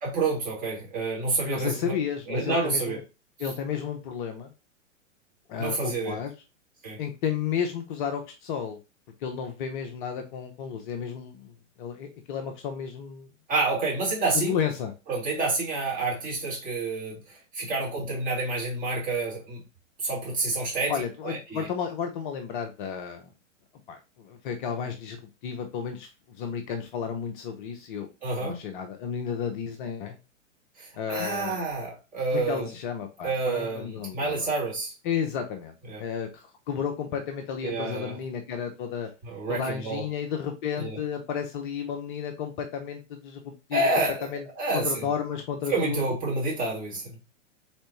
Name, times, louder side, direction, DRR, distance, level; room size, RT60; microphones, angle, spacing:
voice 1, 0.0-1.9 2.3-3.0 5.6-6.2 6.8-7.0 13.5-14.6 15.1-19.6 20.0-20.9 21.2-21.7 28.2-28.6 30.8-32.7 33.2-34.9 35.9-36.0 37.6-38.2 39.2-40.0 40.8-41.0 43.7-44.3 44.6-45.1 45.7-47.1, right 3 dB, 20° right, -4 dB, 2.7 m, -28 dB
voice 2, 1.4-3.0 3.4-4.5 5.5-6.3 7.0-8.8 9.2-11.5 11.8-13.3 14.3-14.9 20.9-23.3 23.9-25.2 25.4-28.1 28.4-30.2 31.0-31.6 32.3-34.5 35.0-39.1 39.5-43.9 44.2-44.4 44.7-46.0, left 7 dB, 40° left, 5 dB, 0.8 m, -32 dB
4.3 x 3.7 x 3.0 m, 0.28 s
figure-of-eight pair, 105°, 38 cm